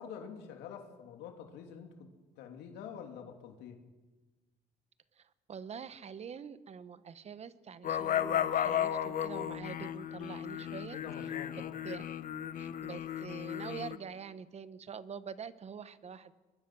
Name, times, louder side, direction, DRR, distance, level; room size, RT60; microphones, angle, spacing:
voice 1, 0.0-2.1 2.4-3.8 10.9-11.8, left 7 dB, 85° left, 4 dB, 3.0 m, -47 dB
voice 2, 5.2-11.0 11.8-12.1 12.6-16.3, right 6 dB, 40° right, 14 dB, 1.2 m, -45 dB
sound 1, 7.8-14.0, left 10 dB, 55° left, 1.1 m, -34 dB
22.5 x 22.0 x 6.2 m, 1.2 s
cardioid pair, 110°, 17 cm